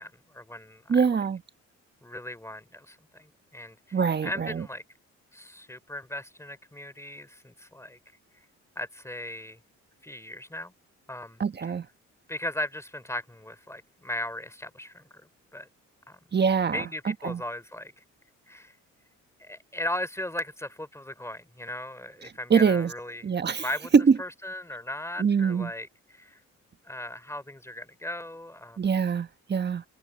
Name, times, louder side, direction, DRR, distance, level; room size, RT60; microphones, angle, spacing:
voice 1, 0.0-1.2 2.0-4.8 5.3-8.0 8.8-9.6 10.0-10.7 11.1-11.8 12.3-15.0 15.5-15.7 16.1-16.2 16.7-17.9 18.5-18.7 19.4-23.2 23.6-23.9 24.2-26.4 26.9-28.8, left 1 dB, 10° left, 3.4 m, -37 dB
voice 2, 0.9-1.4 3.9-4.6 11.4-11.9 16.3-17.4 22.5-22.9 23.2-23.6 23.9-24.2 25.2-25.7 28.8-29.8, right 6 dB, 35° right, 1.3 m, -24 dB
cardioid pair, 90°, 30 cm